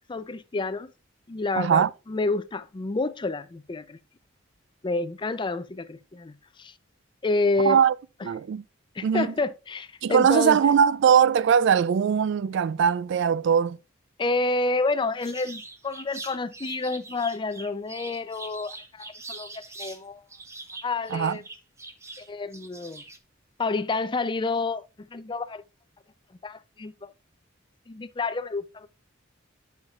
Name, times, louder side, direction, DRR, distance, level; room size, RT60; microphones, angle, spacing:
voice 1, 0.1-0.9 1.3-4.0 4.8-6.7 7.2-7.8 8.9-10.6 14.2-20.2 20.8-21.4 22.2-23.0 23.6-24.8 25.1-25.6 26.4-27.1 27.9-28.9, left 3 dB, 25° left, 0.4 m, -29 dB
voice 2, 1.6-1.9 7.6-7.9 8.2-8.6 9.0-9.3 10.0-13.8 21.1-21.4, right 7 dB, 60° right, 0.3 m, -21 dB
sound 1, 15.2-20.0 20.3-23.2, right 2 dB, 15° right, 0.7 m, -42 dB
11.0 x 5.7 x 2.3 m
head